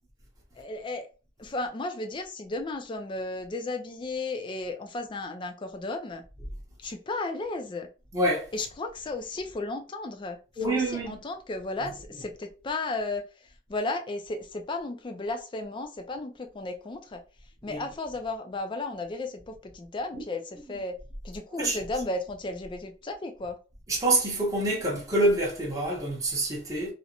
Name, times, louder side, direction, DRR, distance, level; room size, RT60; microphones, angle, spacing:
voice 1, 0.6-1.1 1.4-6.2 6.8-7.9 8.5-17.2 17.6-21.0 21.2-23.6, left 2 dB, 25° left, 0.4 m, -34 dB
voice 2, 8.1-8.5 10.6-11.1 17.6-17.8 20.1-20.2 21.6-21.8 23.9-26.9, right 1 dB, 20° right, 0.7 m, -26 dB
2.5 x 2.1 x 2.8 m
head